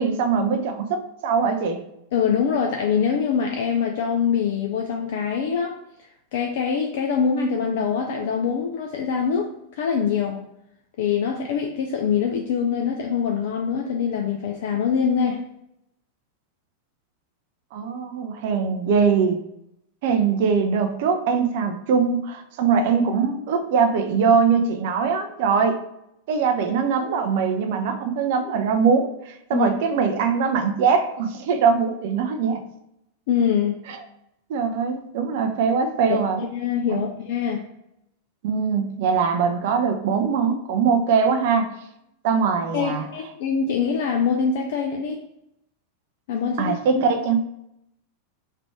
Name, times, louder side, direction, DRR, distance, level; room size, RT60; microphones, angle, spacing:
voice 1, 0.0-1.8 17.7-19.4 20.0-25.8 26.3-32.6 33.9-34.0 34.5-36.4 36.9-37.1 38.4-41.7 42.2-43.0 46.6-47.5, right 6 dB, 50° right, 6 dB, 0.5 m, -22 dB
voice 2, 2.1-9.5 9.8-10.4 11.0-15.4 29.5-29.7 33.3-33.8 36.1-37.6 42.7-45.2 46.3-47.0, left 7 dB, 55° left, 2 dB, 0.4 m, -24 dB
3.3 x 2.5 x 4.4 m, 0.81 s
figure-of-eight pair, 90°, 0 cm